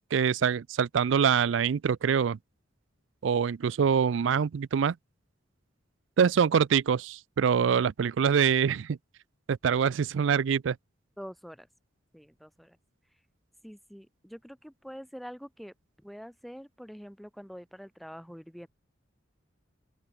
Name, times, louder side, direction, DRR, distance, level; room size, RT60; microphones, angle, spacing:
voice 1, 0.1-2.4 3.2-5.0 6.2-9.0 9.5-10.8, right 7 dB, 70° right, 0.4 m, -25 dB
voice 2, 11.2-11.7 12.1-12.8 13.6-18.7, equal, ahead, 1.0 m, -45 dB
open air
head